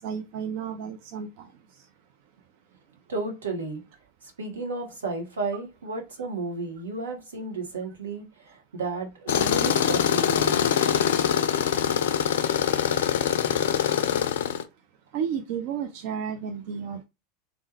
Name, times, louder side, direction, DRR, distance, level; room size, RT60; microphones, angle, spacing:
voice 1, 0.0-1.5 15.1-17.0, right 7 dB, 55° right, 0.4 m, -32 dB
voice 2, 3.1-3.8 4.4-10.6, right 3 dB, 75° right, 0.8 m, -33 dB
Tools, 9.3-14.6, left 9 dB, 70° left, 0.3 m, -23 dB
3.2 x 2.0 x 2.9 m
figure-of-eight pair, 80°, 0 cm